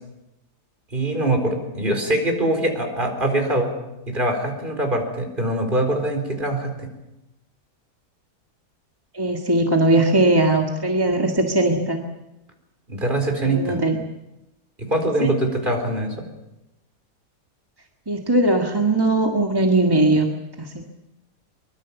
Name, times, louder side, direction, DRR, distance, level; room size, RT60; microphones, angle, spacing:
voice 1, 0.9-3.7 4.1-6.9 12.9-13.8 14.8-16.1, right 1 dB, 30° right, 3 dB, 4.5 m, -23 dB
voice 2, 9.1-12.0 13.4-14.0 15.2-15.4 18.1-20.7, right 2 dB, 15° right, 2 dB, 1.6 m, -20 dB
23.5 x 22.5 x 7.2 m, 0.95 s
omnidirectional pair, 1.8 m